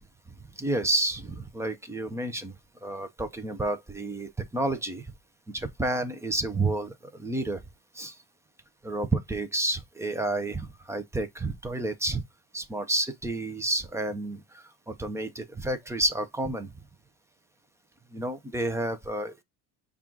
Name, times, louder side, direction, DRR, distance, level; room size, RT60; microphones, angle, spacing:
voice 1, 0.6-2.5 2.8-5.0 5.5-7.6 8.0-8.1 8.8-12.2 12.5-14.4 14.9-16.7 18.1-19.4, right 2 dB, 10° right, 0.4 m, -30 dB
5.8 x 2.4 x 3.7 m
cardioid pair, 155°, 35 cm